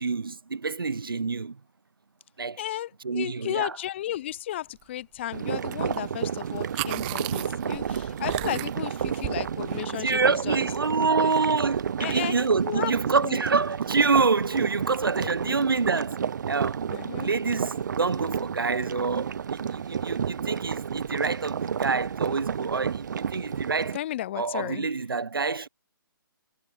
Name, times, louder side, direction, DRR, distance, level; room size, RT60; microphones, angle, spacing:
voice 1, 0.0-1.6 2.4-2.6 3.0-3.7 10.0-16.2 16.5-16.8 17.2-24.0 24.4-25.7, right 4 dB, 75° right, 1.1 m, -27 dB
voice 2, 2.6-10.7 11.0-11.3 12.0-12.4 12.6-12.9 13.2-13.4 15.2-15.6 16.9-17.3 23.9-24.9, left 13 dB, 30° left, 0.5 m, -34 dB
Boiling Soup, 5.3-24.0, right 7 dB, 55° right, 0.6 m, -31 dB
sound 1, 5.7-6.0 6.2-9.8, right 29 dB, 25° right, 1.3 m, -36 dB
figure-of-eight pair, 140°, 12 cm